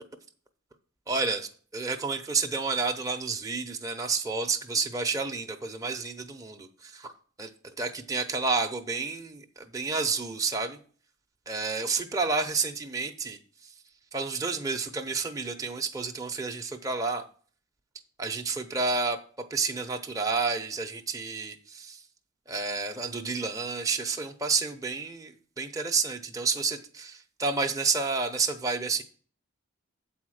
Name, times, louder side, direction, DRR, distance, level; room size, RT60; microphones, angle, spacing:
voice 1, 1.1-7.1 7.4-7.5 7.8-10.8 11.5-13.4 14.1-17.3 18.2-22.0 22.5-29.0, right 4 dB, 15° right, 3 dB, 0.7 m, -30 dB
8.2 x 4.3 x 6.4 m, 0.42 s
head